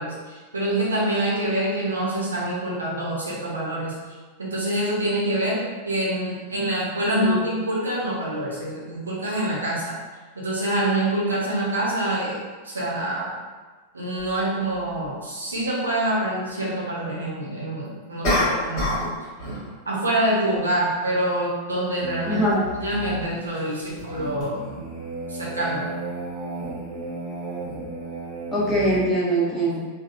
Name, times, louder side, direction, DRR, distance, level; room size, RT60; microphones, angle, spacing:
voice 1, 0.0-4.0 4.4-10.0 10.3-12.4 12.6-13.3 13.9-18.9 19.9-22.5 22.8-24.6 25.3-25.9, right 1 dB, 75° right, -6 dB, 0.7 m, -26 dB
voice 2, 7.1-7.4 22.2-22.7 28.5-29.8, right 1 dB, 15° left, -7 dB, 0.9 m, -22 dB
sound 1, 14.2-14.3 18.2-19.1 19.4-19.7, left 1 dB, 35° left, 1.4 m, -23 dB
sound 2, 22.0-29.0, right 2 dB, 30° right, 1.1 m, -34 dB
3.5 x 2.2 x 2.4 m, 1.3 s
figure-of-eight pair, 90°, 0 cm